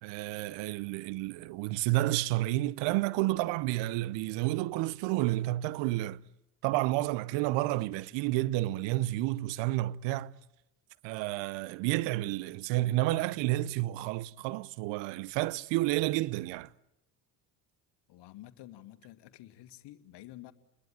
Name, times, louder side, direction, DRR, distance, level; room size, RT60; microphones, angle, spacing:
voice 1, 0.0-6.2 6.6-10.3 11.0-16.7, right 17 dB, 65° right, 1.0 m, -30 dB
voice 2, 18.1-20.5, left 15 dB, 60° left, 2.2 m, -50 dB
30.0 x 21.0 x 9.2 m
hypercardioid pair, 65°, 47 cm